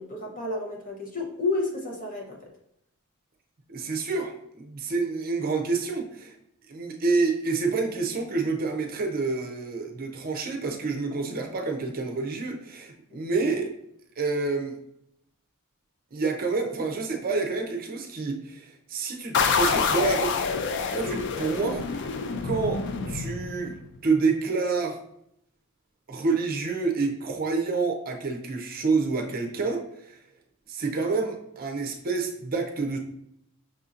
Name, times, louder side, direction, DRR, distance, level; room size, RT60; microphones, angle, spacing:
voice 1, 0.0-2.5, left 3 dB, 40° left, -1 dB, 0.9 m, -31 dB
voice 2, 3.7-6.3 6.7-13.7 14.2-14.8 16.1-20.4 20.9-22.0 22.4-23.8 24.0-25.0 26.1-30.1 30.7-33.0, right 4 dB, 40° right, 3 dB, 0.5 m, -28 dB
sound 1, 19.3-23.9, left 5 dB, 55° left, 0.4 m, -27 dB
6.1 x 2.7 x 2.4 m, 0.74 s
head